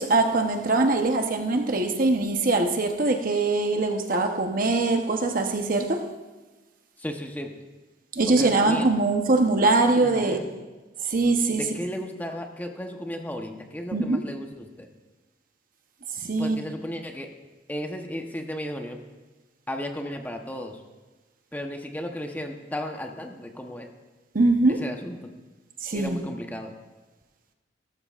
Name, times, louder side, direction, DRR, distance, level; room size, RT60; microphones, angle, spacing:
voice 1, 0.0-6.1 8.2-10.4 11.0-11.8 13.9-14.2 16.3-16.6 24.3-24.8 25.8-26.2, right 2 dB, 55° right, 4 dB, 1.0 m, -22 dB
voice 2, 7.0-7.5 8.3-8.9 10.0-10.5 11.5-14.9 16.4-17.3 17.7-19.0 19.7-20.8 21.5-23.9 24.8-25.2 25.9-26.7, equal, 10° left, 3 dB, 0.9 m, -34 dB
18.0 x 13.0 x 2.5 m, 1.2 s
head